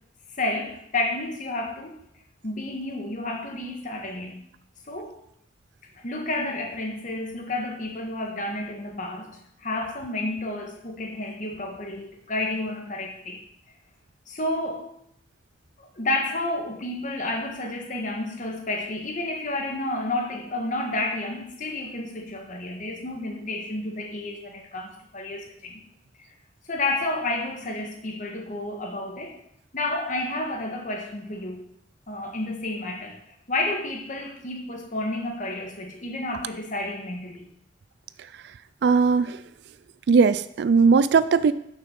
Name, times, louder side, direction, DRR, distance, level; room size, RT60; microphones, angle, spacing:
voice 1, 0.3-2.0 2.4-4.4 4.9-5.2 6.0-13.5 14.3-14.9 15.8-25.8 26.7-29.4 29.7-31.7 32.1-33.2 33.5-37.5, left 2 dB, 45° left, 1.5 m, -31 dB
voice 2, 38.8-39.4 40.1-41.5, right 5 dB, 65° right, 0.3 m, -18 dB
6.7 x 5.8 x 7.1 m
head